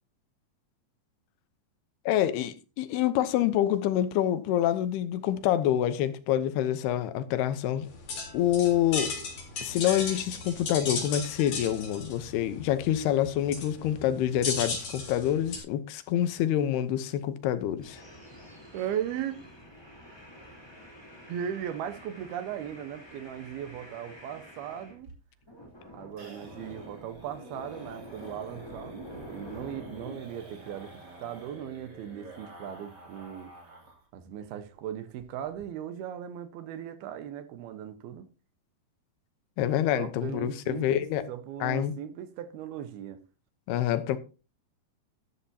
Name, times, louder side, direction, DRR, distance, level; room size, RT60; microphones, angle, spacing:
voice 1, 2.1-7.9 8.3-9.1 9.6-18.0 39.6-41.2 41.6-41.9 43.7-44.2, left 11 dB, 90° left, 3.0 m, -27 dB
sound 1, 7.8-15.6, left 4 dB, 55° left, 5.1 m, -36 dB
sound 2, 17.8-25.0 25.4-30.2, left 1 dB, 5° left, 3.1 m, -48 dB
voice 2, 18.7-19.4 21.3-25.1 25.9-33.5 34.1-38.3 39.9-43.2, right 9 dB, 80° right, 3.0 m, -38 dB
sound 3, 25.0-34.1 34.4-34.5 34.8-34.9 35.2-35.6, right 1 dB, 30° right, 3.0 m, -49 dB
13.0 x 12.0 x 2.8 m
omnidirectional pair, 4.5 m